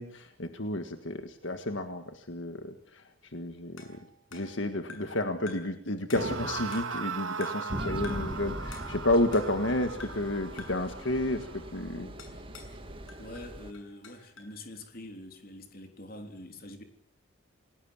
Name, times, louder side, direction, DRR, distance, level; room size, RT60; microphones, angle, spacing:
voice 1, 0.0-3.0 3.3-3.9 4.3-12.1, left 1 dB, 65° left, 1.8 m, -31 dB
sound 1, 3.8-5.2 5.5-5.8 6.1-7.1 7.4-7.7 8.0-8.4 8.7-9.7 10.0-10.3 10.6-10.9 12.2-12.8 13.1-14.6, left 4 dB, 85° left, 6.6 m, -49 dB
sound 2, 6.1-13.3, right 4 dB, 75° right, 3.1 m, -39 dB
sound 3, 7.7-13.7, equal, 25° right, 2.1 m, -41 dB
voice 2, 13.2-16.8, left 1 dB, 45° left, 3.5 m, -45 dB
29.0 x 19.5 x 7.2 m
head